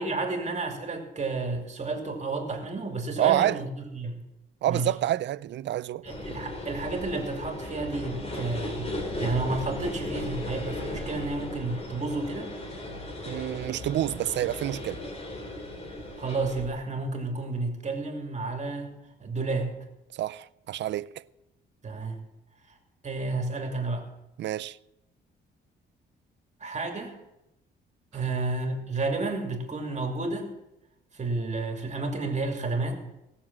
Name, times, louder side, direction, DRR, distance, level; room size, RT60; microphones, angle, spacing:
voice 1, 0.0-4.2 4.7-4.9 6.0-8.9 9.2-12.5 16.2-19.8 21.8-22.2 22.7-22.8 23.0-24.1 26.6-27.2 28.1-30.6 31.1-33.0, right 3 dB, 35° right, 2.7 m, -31 dB
voice 2, 3.2-3.6 4.6-6.0 13.3-15.0 20.1-21.2 24.4-24.8, right 13 dB, 65° right, 0.5 m, -28 dB
sound 1, 6.0-16.7, left 1 dB, 30° left, 3.5 m, -36 dB
17.5 x 7.1 x 7.3 m
cardioid pair, 90°, 20 cm